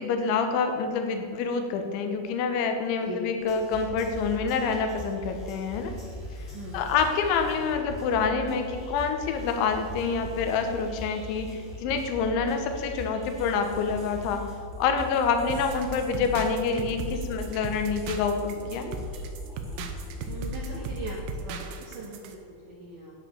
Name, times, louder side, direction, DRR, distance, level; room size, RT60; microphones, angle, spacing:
voice 1, 0.0-5.9 6.7-14.4 14.8-18.9, left 5 dB, 75° left, 5 dB, 3.4 m, -27 dB
voice 2, 2.9-3.2 6.5-6.8 20.2-23.1, right 3 dB, 55° right, -5 dB, 2.5 m, -40 dB
sound 1, 3.4-21.2, left 2 dB, 20° left, 2.1 m, -40 dB
sound 2, 15.5-22.4, right 3 dB, 80° right, 3.4 m, -37 dB
10.5 x 9.2 x 6.7 m, 2.3 s
omnidirectional pair, 5.6 m